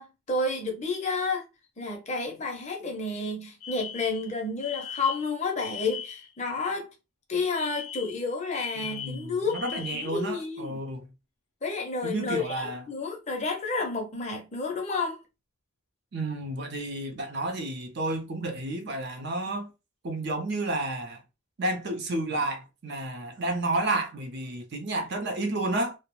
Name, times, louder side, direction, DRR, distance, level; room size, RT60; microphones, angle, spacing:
voice 1, 0.0-1.5 1.8-6.9 7.3-10.8 11.6-15.2, left 3 dB, 30° left, 0.6 m, -30 dB
Alarm, 3.6-6.3 7.5-10.3, left 8 dB, 80° left, 0.5 m, -39 dB
voice 2, 8.8-11.1 12.0-12.8 16.1-19.7 20.0-21.2 21.6-26.0, right 2 dB, 50° right, 0.5 m, -31 dB
2.3 x 2.1 x 2.9 m
head